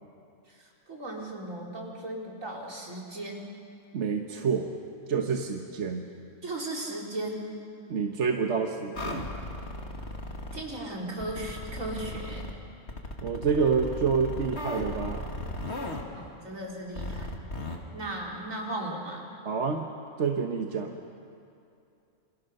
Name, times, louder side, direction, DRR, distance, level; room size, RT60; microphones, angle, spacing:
voice 1, 0.5-3.5 6.4-7.6 10.5-12.5 16.1-17.3 17.9-19.2, right 1 dB, 85° right, -2 dB, 4.4 m, -36 dB
voice 2, 3.9-4.7 5.1-6.1 7.9-9.3 13.2-15.2 19.4-19.8 20.2-21.0, right 5 dB, 65° right, 3 dB, 1.5 m, -28 dB
sound 1, 8.9-10.6 11.2-12.5 12.9-16.0 17.0-17.8, left 1 dB, 55° left, 2.6 m, -36 dB
28.0 x 27.5 x 6.6 m, 2.6 s
omnidirectional pair, 1.3 m